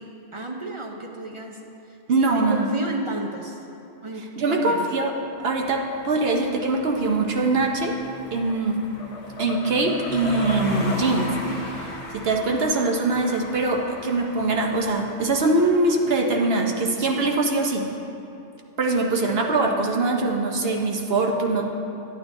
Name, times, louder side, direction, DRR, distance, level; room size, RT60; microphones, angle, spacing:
voice 1, 0.0-1.6 1.9-3.6 4.0-4.9, right 2 dB, 40° right, 1 dB, 0.5 m, -33 dB
voice 2, 2.1-2.7 4.4-5.1 5.4-7.9 8.3-8.8 9.4-11.9 12.1-17.9 18.8-21.7, right 2 dB, 60° right, 1 dB, 1.0 m, -23 dB
sound 1, 5.5-15.8, left 2 dB, 70° left, 1.3 m, -37 dB
sound 2, 8.2-8.6 9.0-11.1, left 3 dB, 90° left, 1.1 m, -35 dB
11.5 x 8.9 x 2.6 m, 2.8 s
omnidirectional pair, 1.2 m